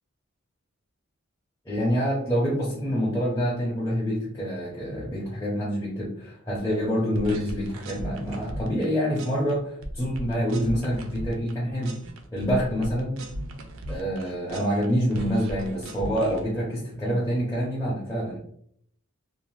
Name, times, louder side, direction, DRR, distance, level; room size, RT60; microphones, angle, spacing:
voice 1, 1.7-12.0 12.3-13.2 13.9-18.4, equal, 15° left, -8 dB, 0.5 m, -26 dB
sound 1, 7.1-8.8 9.2-9.5 9.8-11.5 11.8-14.9 15.1-16.4, right 1 dB, 65° right, 0.4 m, -37 dB
2.6 x 2.0 x 3.0 m, 0.64 s
head